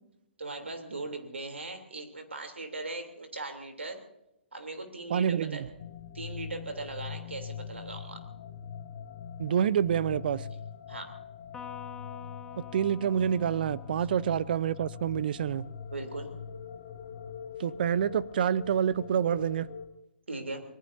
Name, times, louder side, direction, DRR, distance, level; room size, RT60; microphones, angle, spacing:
voice 1, 0.4-4.0 4.5-5.6 6.1-8.2 10.9-11.1 15.9-16.3 20.3-20.6, right 2 dB, 80° right, 3.2 m, -39 dB
voice 2, 5.1-5.7 9.4-10.5 12.6-15.7 17.6-19.7, right 9 dB, 50° right, 0.7 m, -27 dB
sound 1, 5.8-19.9, left 7 dB, 45° left, 2.2 m, -43 dB
Electric guitar, 11.5-15.1, left 9 dB, 10° left, 1.2 m, -48 dB
25.5 x 20.0 x 2.7 m
figure-of-eight pair, 130°, 6 cm